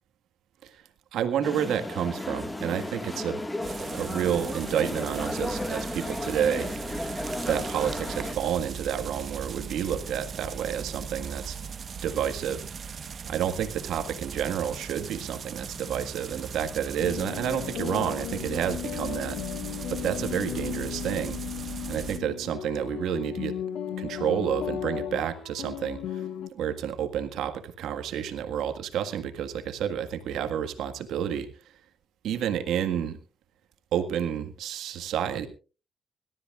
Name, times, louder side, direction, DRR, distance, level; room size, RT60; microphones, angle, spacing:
voice 1, 1.1-3.4 3.9-6.7 7.4-11.6 12.0-12.7 13.3-19.4 19.9-21.4 21.9-23.6 24.0-26.2 26.5-31.5 32.2-33.2 33.9-35.5, right 9 dB, 80° right, 7 dB, 1.7 m, -30 dB
sound 1, 1.4-8.4, left 1 dB, 15° left, 1.8 m, -34 dB
sound 2, 3.6-22.2, right 6 dB, 50° right, 1.2 m, -39 dB
sound 3, 17.0-26.5, left 10 dB, 80° left, 1.7 m, -35 dB
25.5 x 13.0 x 2.4 m, 0.34 s
cardioid pair, 90°, 0 cm